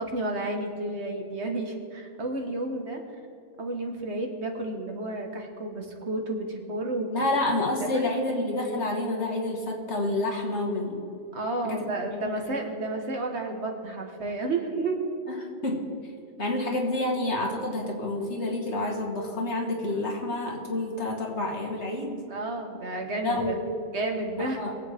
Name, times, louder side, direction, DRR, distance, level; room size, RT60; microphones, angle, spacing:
voice 1, 0.0-3.0 3.6-7.3 7.8-8.1 11.3-15.0 22.3-23.6 23.9-24.6, right 2 dB, 75° right, 2 dB, 1.8 m, -31 dB
voice 2, 7.1-11.0 11.6-11.9 12.2-12.3 15.3-15.9 16.4-22.2 23.2-23.6 24.4-24.7, left 2 dB, 85° left, 0 dB, 2.1 m, -29 dB
22.0 x 8.2 x 3.5 m, 2.6 s
omnidirectional pair, 1.1 m